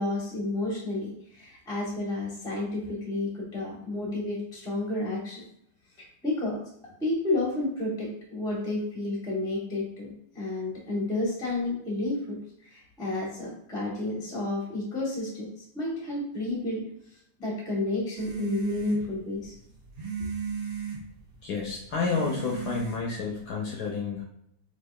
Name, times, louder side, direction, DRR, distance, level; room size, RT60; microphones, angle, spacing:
voice 1, 0.0-5.4 6.0-6.6 7.0-16.8 17.4-19.5, left 2 dB, 5° left, -4 dB, 0.5 m, -31 dB
sound 1, 18.2-23.6, right 7 dB, 80° right, 1.6 m, -37 dB
voice 2, 21.4-24.2, left 5 dB, 70° left, -1 dB, 1.0 m, -30 dB
4.5 x 2.6 x 2.3 m, 0.76 s
omnidirectional pair, 2.1 m